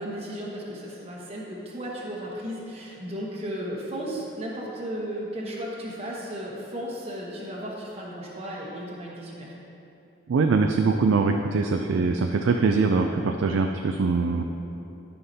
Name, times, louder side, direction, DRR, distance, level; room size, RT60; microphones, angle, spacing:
voice 1, 0.0-9.5, equal, 30° right, -4 dB, 1.0 m, -35 dB
voice 2, 10.3-14.4, right 4 dB, 80° right, 4 dB, 0.4 m, -23 dB
12.5 x 5.7 x 2.8 m, 2.9 s
head